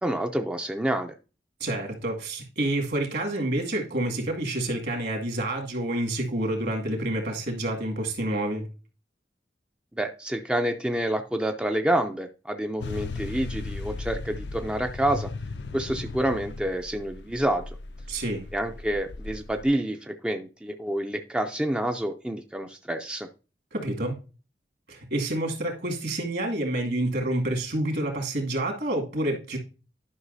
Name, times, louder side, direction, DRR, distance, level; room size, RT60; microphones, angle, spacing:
voice 1, 0.0-1.1 10.0-15.3 15.7-17.8 18.5-23.3, right 1 dB, 5° right, 4 dB, 0.4 m, -28 dB
voice 2, 1.6-8.7 18.1-18.5 23.7-24.2 24.9-29.6, right 1 dB, 65° right, 1 dB, 2.2 m, -28 dB
sound 1, 12.8-19.7, left 3 dB, 75° left, 0.5 m, -37 dB
11.0 x 5.5 x 2.7 m, 0.34 s
head